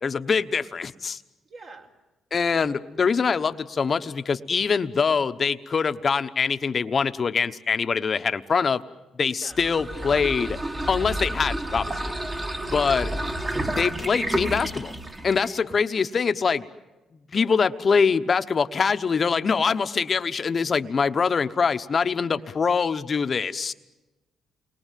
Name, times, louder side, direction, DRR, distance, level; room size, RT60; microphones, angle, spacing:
voice 1, 0.0-1.2 2.3-8.8 9.2-10.6 10.9-12.2 12.7-13.1 13.8-14.9 15.2-16.6 17.3-23.7, left 5 dB, 40° left, 10 dB, 1.1 m, -24 dB
voice 2, 1.4-1.9 9.4-9.6 12.5-12.9 17.3-17.5 22.4-22.5, right 3 dB, 50° right, 1 dB, 4.4 m, -46 dB
sound 1, 9.5-15.6, right 1 dB, 25° right, 1.9 m, -30 dB
29.5 x 22.5 x 7.6 m, 1.1 s
cardioid pair, 90°, 0 cm